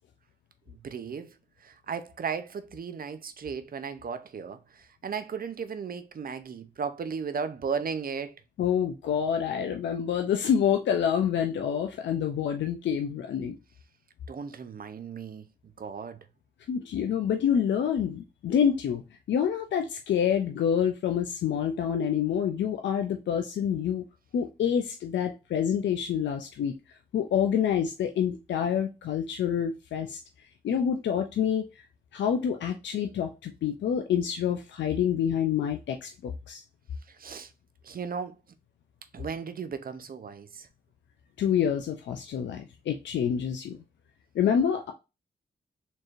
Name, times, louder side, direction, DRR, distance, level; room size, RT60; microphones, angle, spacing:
voice 1, 0.7-1.3 1.6-8.4 14.3-15.4 15.8-16.2 37.1-37.5 37.8-38.4 39.1-40.7, right 6 dB, 50° right, 0.6 m, -35 dB
voice 2, 8.6-13.6 16.7-19.0 19.3-24.0 24.3-26.7 27.1-30.2 30.6-31.7 32.1-36.6 41.4-43.8 44.3-44.9, left 8 dB, 80° left, 0.5 m, -27 dB
4.4 x 3.0 x 2.5 m
supercardioid pair, 45°, 19 cm